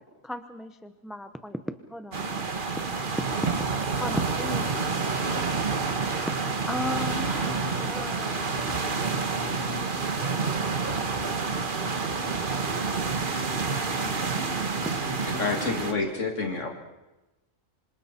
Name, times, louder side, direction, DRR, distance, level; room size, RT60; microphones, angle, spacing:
voice 1, 0.2-2.4 3.9-5.1 6.2-6.3 6.7-8.6 13.6-14.4, left 1 dB, ahead, 9 dB, 0.8 m, -37 dB
sound 1, 2.1-15.9, right 4 dB, 40° right, 1.5 m, -28 dB
voice 2, 7.0-9.0 9.3-10.9 11.5-12.9 14.2-15.9, left 2 dB, 30° left, 1 dB, 4.2 m, -44 dB
voice 3, 15.2-16.7, left 4 dB, 65° left, 3 dB, 2.5 m, -28 dB
27.0 x 26.0 x 4.4 m, 1.0 s
omnidirectional pair, 1.4 m